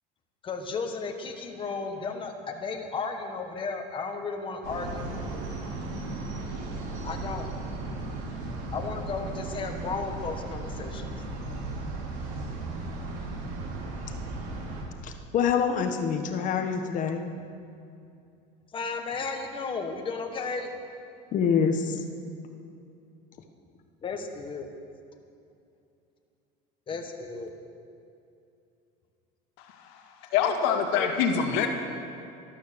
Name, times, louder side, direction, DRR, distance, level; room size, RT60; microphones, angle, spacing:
voice 1, 0.4-5.1 7.0-7.5 8.7-11.1 18.7-20.7 24.0-24.7 26.9-27.5 30.4-31.3, left 4 dB, 25° left, 4 dB, 1.5 m, -34 dB
sound 1, 4.6-14.8, right 2 dB, 75° right, 3.3 m, -36 dB
voice 2, 15.0-17.3 21.3-22.0, left 7 dB, 45° left, 6 dB, 1.3 m, -26 dB
voice 3, 29.6-30.0 30.3-31.7, left 7 dB, 70° left, 4 dB, 2.0 m, -25 dB
13.0 x 12.5 x 6.9 m, 2.5 s
cardioid pair, 135°, 19 cm